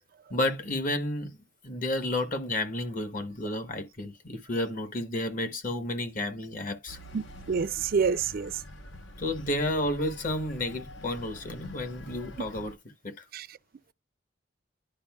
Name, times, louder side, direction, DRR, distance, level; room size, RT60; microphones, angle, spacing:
voice 1, 0.3-1.3 1.6-7.0 9.2-12.8 13.0-13.1, left 1 dB, 45° left, 1.0 m, -31 dB
sound 1, 6.9-12.7, left 1 dB, 75° left, 1.0 m, -46 dB
voice 2, 7.5-8.5 13.3-13.4, right 5 dB, 50° right, 0.4 m, -27 dB
11.0 x 4.7 x 2.3 m
head